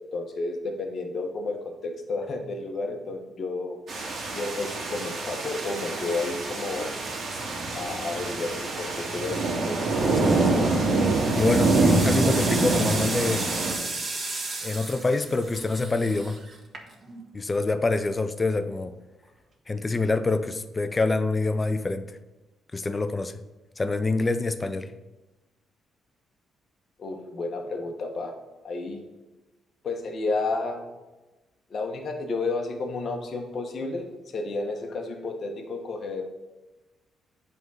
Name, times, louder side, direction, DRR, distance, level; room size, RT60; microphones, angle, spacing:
voice 1, 0.1-3.8 4.3-6.9 7.7-9.9 27.0-28.3 28.6-29.0 29.8-30.8 31.7-36.2, left 3 dB, 50° left, 2 dB, 1.2 m, -31 dB
sound 1, 3.9-13.7, right 2 dB, 55° right, 1.8 m, -25 dB
sound 2, 10.1-10.5 10.9-17.2, right 3 dB, 40° right, 1.6 m, -34 dB
voice 2, 10.2-10.6 11.3-13.5 14.6-16.4 17.3-19.0 19.7-22.1 22.7-23.4 23.8-24.9, left 3 dB, 25° left, 10 dB, 0.5 m, -26 dB
8.3 x 3.7 x 5.6 m, 1.1 s
cardioid pair, 90°, 0 cm